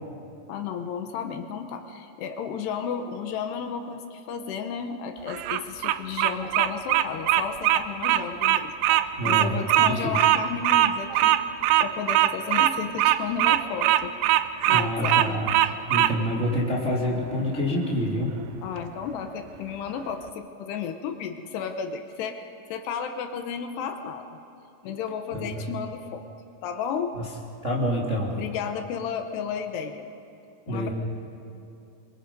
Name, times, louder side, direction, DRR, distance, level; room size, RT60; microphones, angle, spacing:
voice 1, 0.5-8.7 9.0-11.4 11.8-14.1 14.7-15.2 18.6-24.3 24.8-26.2 26.6-27.1 28.4-30.1 30.7-30.9, left 7 dB, 75° left, 6 dB, 2.9 m, -33 dB
Bird vocalization bird call bird song, 5.3-16.1, right 13 dB, 85° right, 2.2 m, -21 dB
voice 2, 9.2-10.2 14.7-15.5 15.9-18.3 25.3-25.6 27.1-27.2 27.6-28.3 30.7-30.9, equal, 25° right, -4 dB, 1.8 m, -27 dB
26.5 x 23.5 x 5.3 m, 2.9 s
omnidirectional pair, 5.1 m